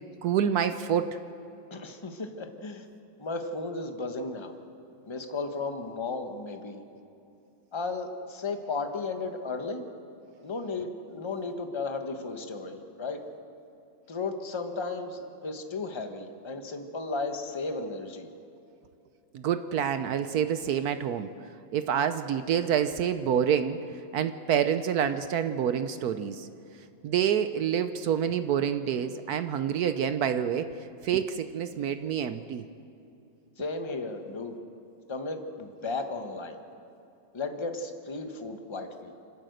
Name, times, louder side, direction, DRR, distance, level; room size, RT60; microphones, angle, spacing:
voice 1, 0.2-1.2 19.3-21.3 21.7-23.8 24.1-26.5 27.0-30.7 31.0-32.6, right 8 dB, 70° right, 10 dB, 0.9 m, -27 dB
voice 2, 1.7-2.8 3.2-4.5 5.0-6.8 7.7-9.9 10.4-13.2 14.1-18.3 33.6-34.6 35.1-36.6 37.3-39.1, left 3 dB, 20° left, 5 dB, 0.8 m, -34 dB
27.0 x 12.5 x 7.9 m, 2.6 s
omnidirectional pair, 2.3 m